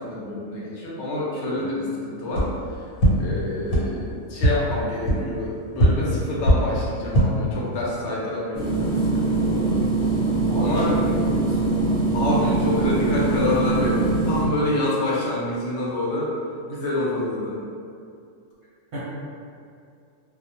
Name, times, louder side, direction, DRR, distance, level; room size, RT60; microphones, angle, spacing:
voice 1, 0.0-2.9 3.2-9.9 10.6-10.9 12.1-16.3 16.7-17.6, left 1 dB, 65° left, -5 dB, 0.8 m, -27 dB
sound 1, 2.3-2.4 3.0-3.1 3.7-3.8 4.4-4.5 5.0-5.1 5.8-5.9 6.4-6.5 7.0-7.2, right 1 dB, 90° left, 1.2 m, -17 dB
sound 2, 8.5-14.5, right 3 dB, 30° left, 1.0 m, -22 dB
voice 2, 10.5-12.0 18.9-19.1, equal, 55° right, -10 dB, 0.7 m, -32 dB
2.3 x 2.0 x 2.7 m, 2.4 s
omnidirectional pair, 1.4 m